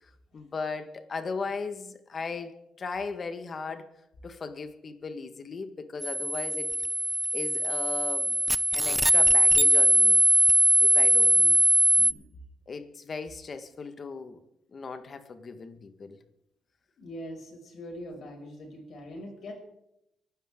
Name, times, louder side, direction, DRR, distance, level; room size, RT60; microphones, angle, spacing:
voice 1, 0.0-3.9 4.2-6.7 7.3-8.4 8.7-10.2 10.8-11.4 12.7-14.4 14.7-16.2, left 4 dB, 40° left, 1.6 m, -37 dB
sound 1, 6.0-12.1, equal, 5° right, 0.6 m, -21 dB
voice 2, 12.0-12.4 17.0-19.5, equal, 60° left, 6.5 m, -42 dB
24.5 x 12.0 x 3.8 m
cardioid pair, 90°, 0 cm